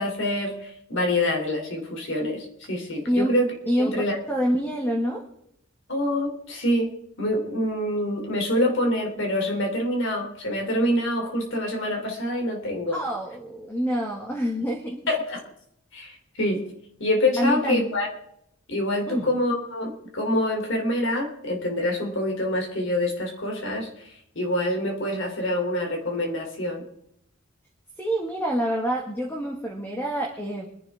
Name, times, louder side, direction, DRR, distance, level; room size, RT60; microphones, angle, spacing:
voice 1, 0.0-3.5 3.8-4.2 5.9-13.0 15.1-15.4 15.9-16.6 17.0-18.1 18.7-24.1 24.3-26.8, left 1 dB, 60° left, 2 dB, 3.3 m, -26 dB
voice 2, 3.7-4.0 4.3-5.2 12.9-15.0 17.4-18.0 19.1-19.3 28.0-30.7, equal, 10° left, 0 dB, 1.8 m, -26 dB
24.5 x 10.5 x 3.6 m, 0.73 s
head